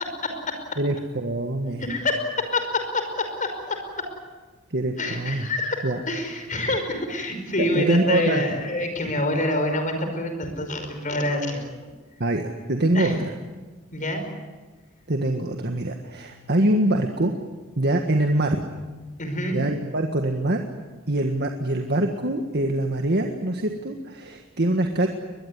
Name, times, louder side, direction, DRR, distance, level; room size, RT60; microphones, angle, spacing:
voice 1, 0.8-1.8 4.7-5.5 5.8-6.0 7.6-8.6 12.2-13.3 15.1-17.3 17.8-18.6 19.5-20.6 21.1-25.1, right 1 dB, 50° right, 4 dB, 1.7 m, -24 dB
voice 2, 1.8-4.1 5.0-11.6 12.9-13.2 13.9-14.2 19.2-19.6, left 1 dB, 40° left, 6 dB, 5.4 m, -26 dB
22.0 x 22.0 x 9.9 m, 1.3 s
head